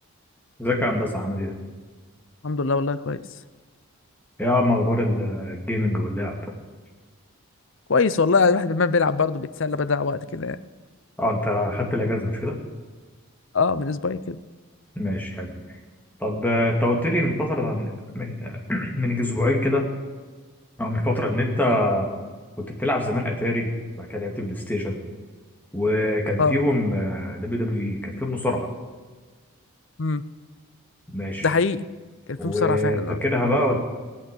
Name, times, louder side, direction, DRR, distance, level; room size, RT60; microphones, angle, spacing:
voice 1, 0.6-1.5 4.4-6.3 11.2-12.6 15.0-15.5 16.2-19.9 20.8-22.1 22.6-23.7 24.0-25.0 25.7-28.7 31.1-31.5 32.4-33.8, left 1 dB, 10° left, 0 dB, 2.3 m, -24 dB
voice 2, 2.4-3.2 7.9-10.6 13.5-14.4 26.4-26.6 30.0-30.2 31.4-31.8 32.3-33.2, left 4 dB, 55° left, 14 dB, 0.6 m, -22 dB
19.5 x 8.5 x 8.4 m, 1.4 s
head